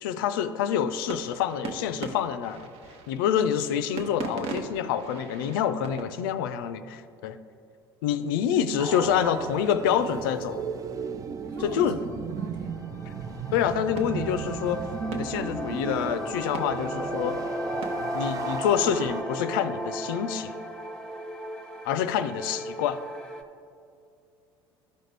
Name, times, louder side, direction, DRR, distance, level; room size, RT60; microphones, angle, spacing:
voice 1, 0.0-2.7 3.1-7.4 8.0-10.6 11.6-12.0 13.5-17.4 18.1-20.6 21.8-23.0, left 9 dB, 65° left, 11 dB, 0.4 m, -27 dB
sound 1, 0.8-6.8 12.1-12.5 13.3-13.5 14.0-14.8 15.1-19.6, right 4 dB, 50° right, 0.8 m, -41 dB
sound 2, 8.8-19.2, right 6 dB, 30° right, 0.4 m, -35 dB
voice 2, 11.4-12.8, right 2 dB, 65° right, -1 dB, 1.8 m, -41 dB
sound 3, 12.5-23.4, equal, 5° left, 0.9 m, -36 dB
12.5 x 5.0 x 3.3 m, 2.5 s
figure-of-eight pair, 65°, 12 cm